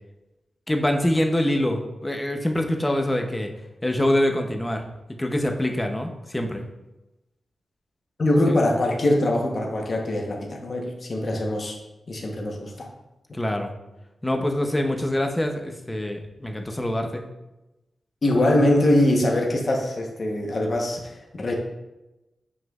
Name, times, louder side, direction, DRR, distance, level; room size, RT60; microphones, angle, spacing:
voice 1, 0.7-3.5 3.8-4.8 5.2-6.6 8.5-8.6 13.3-13.7 14.2-17.2, left 1 dB, 10° left, 4 dB, 0.6 m, -25 dB
voice 2, 8.2-11.8 12.1-12.9 18.2-21.5, left 1 dB, 40° left, 0 dB, 0.9 m, -22 dB
7.2 x 6.2 x 2.4 m, 0.99 s
wide cardioid pair, 165°, 0 cm